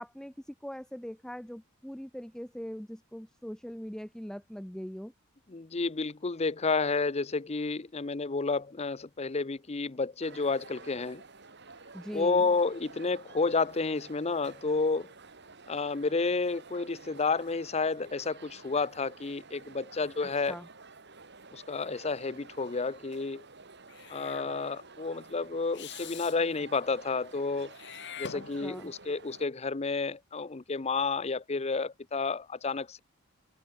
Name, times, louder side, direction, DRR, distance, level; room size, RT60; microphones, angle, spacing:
voice 1, 0.0-5.1 11.9-12.4 20.2-20.7 28.3-28.9, equal, 5° left, 0.8 m, -41 dB
voice 2, 5.5-11.2 12.1-15.1 15.7-20.6 21.5-23.4 24.1-27.7 28.2-33.0, left 4 dB, 30° left, 0.6 m, -30 dB
sound 1, 10.2-29.5, right 4 dB, 55° right, 5.1 m, -51 dB
Meow / Hiss, 23.9-24.5 25.7-26.4 27.7-28.9, left 8 dB, 60° left, 1.5 m, -44 dB
open air
head